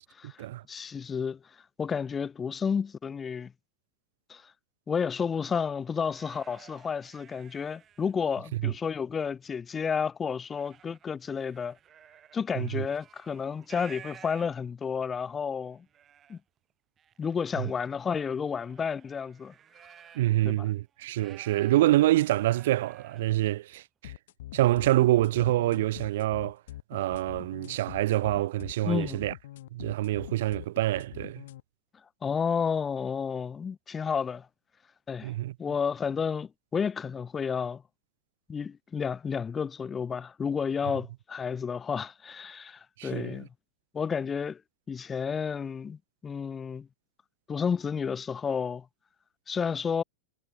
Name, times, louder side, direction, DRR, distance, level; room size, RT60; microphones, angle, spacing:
voice 1, 0.2-1.4 1.8-3.5 4.3-4.4 4.9-11.8 12.3-15.8 16.3-16.4 17.2-19.5 20.4-20.7 28.9-29.3 32.2-34.5 35.1-35.3 35.6-37.8 38.5-43.5 43.9-44.6 44.9-46.9 47.5-48.9 49.5-50.0, left 6 dB, 20° left, 0.6 m, -31 dB
sound 1, 5.7-8.4 8.9-9.6 10.0-14.9 15.4-15.5 15.7-16.4 17.0-20.4 20.7-23.3, right 9 dB, 25° right, 6.5 m, -54 dB
voice 2, 20.1-24.1 24.5-26.6 26.9-29.3 29.7-31.4 35.2-35.5 43.0-43.5, right 15 dB, 55° right, 0.8 m, -26 dB
sound 2, 24.0-31.6, left 14 dB, 55° left, 2.0 m, -44 dB
figure-of-eight pair, 90°, 0 cm